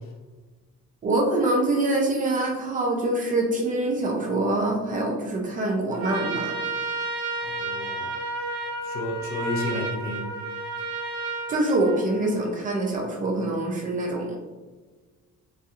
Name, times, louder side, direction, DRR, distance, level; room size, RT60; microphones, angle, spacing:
voice 1, 1.0-6.5 11.5-14.4, right 2 dB, 30° right, -1 dB, 0.4 m, -25 dB
Trumpet, 5.9-12.4, right 3 dB, 65° right, 0.6 m, -32 dB
voice 2, 7.4-8.1 8.8-10.3, left 1 dB, 45° left, 1 dB, 0.5 m, -31 dB
4.0 x 2.6 x 2.4 m, 1.3 s
cardioid pair, 170°, 29 cm